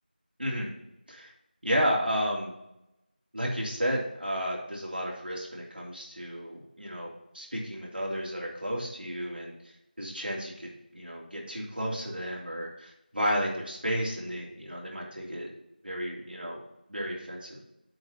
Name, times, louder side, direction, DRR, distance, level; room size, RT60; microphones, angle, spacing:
voice 1, 0.4-0.7 1.1-1.3 1.6-2.5 3.3-7.1 7.3-9.5 10.0-15.5 15.8-16.6 16.9-17.6, equal, 85° right, -3 dB, 3.0 m, -32 dB
7.7 x 4.5 x 5.7 m, 0.87 s
figure-of-eight pair, 180°, 5 cm